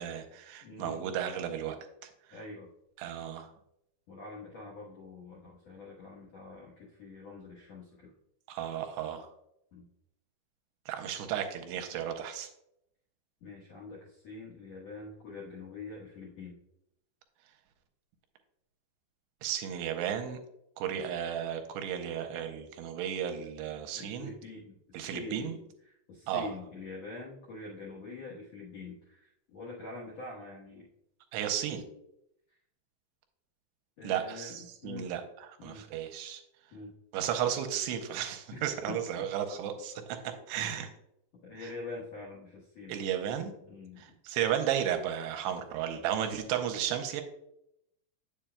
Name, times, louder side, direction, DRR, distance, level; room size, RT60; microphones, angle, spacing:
voice 1, 0.0-1.8 3.0-3.5 8.5-9.3 10.9-12.5 19.4-20.4 20.8-24.3 24.9-25.5 26.3-26.5 31.3-31.8 34.0-35.2 35.6-36.4 37.1-40.2 40.5-40.9 41.6-41.7 42.9-43.5 44.0-47.2, right 9 dB, 85° right, 5 dB, 2.7 m, -34 dB
voice 2, 0.6-1.1 2.3-2.7 4.1-8.1 9.7-9.9 13.4-16.6 20.9-21.1 23.9-25.5 25.8-30.9 34.0-35.1 35.6-35.8 36.7-36.9 38.5-39.3 41.4-43.0 43.6-44.1, left 3 dB, 80° left, -4 dB, 1.5 m, -45 dB
8.6 x 7.2 x 2.2 m, 0.79 s
omnidirectional pair, 4.9 m